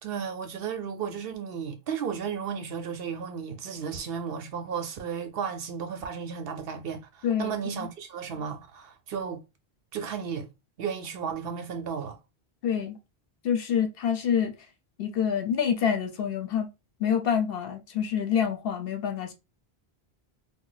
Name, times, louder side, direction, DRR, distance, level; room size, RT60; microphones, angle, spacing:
voice 1, 0.0-9.4 9.9-10.5 10.8-12.2, right 7 dB, 70° right, 0.8 m, -34 dB
voice 2, 7.2-7.9 12.6-13.0 13.4-14.5 15.0-16.7 17.0-19.3, left 8 dB, 70° left, 0.8 m, -27 dB
2.5 x 2.1 x 3.8 m
omnidirectional pair, 1.0 m